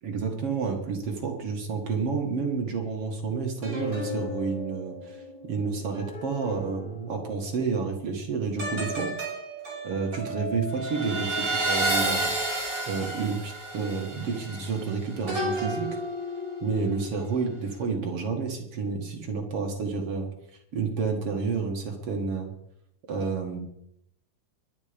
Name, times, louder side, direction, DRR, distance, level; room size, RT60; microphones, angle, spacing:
voice 1, 0.0-9.1 9.8-12.3 12.9-15.9 16.6-20.3 20.7-22.5 23.1-23.6, right 5 dB, 50° right, 3 dB, 2.2 m, -30 dB
sound 1, 3.6-7.3 8.6-17.1 17.5-17.8, right 1 dB, 20° right, 6.7 m, -32 dB
22.5 x 9.5 x 5.2 m, 0.78 s
omnidirectional pair, 4.1 m